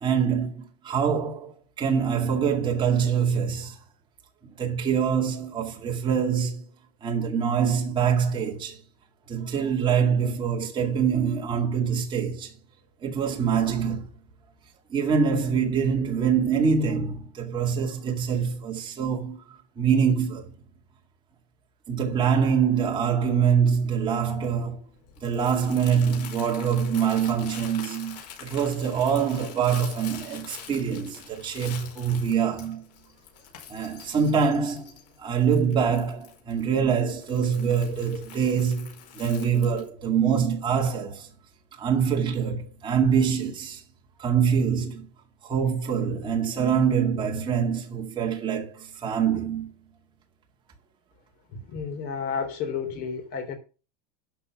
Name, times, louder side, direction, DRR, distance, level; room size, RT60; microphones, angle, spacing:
voice 1, 0.0-3.8 4.6-6.6 7.0-8.8 9.3-12.5 13.0-14.1 14.9-19.4 19.8-20.5 21.9-24.8 25.2-32.9 33.7-41.3 41.7-43.8 44.2-45.1 45.4-49.7, right 7 dB, 20° right, 2.2 m, -25 dB
Crumpling crinkling, 23.5-39.9, left 9 dB, 90° left, 5.1 m, -45 dB
voice 2, 51.5-53.6, left 6 dB, 50° left, 3.6 m, -31 dB
12.5 x 5.5 x 5.9 m
supercardioid pair, 155°, 21 cm